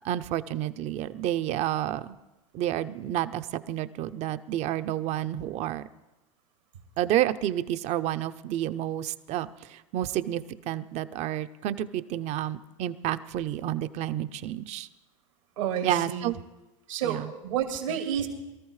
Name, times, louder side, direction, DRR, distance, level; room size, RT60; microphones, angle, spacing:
voice 1, 0.0-2.2 2.5-5.9 7.0-14.9 15.8-16.4 17.0-17.3 17.9-18.0, right 12 dB, 45° right, 12 dB, 0.7 m, -30 dB
voice 2, 15.6-16.3 16.9-18.3, right 9 dB, 85° right, 2 dB, 2.7 m, -30 dB
23.0 x 13.5 x 3.2 m, 1.0 s
hypercardioid pair, 105°, 17 cm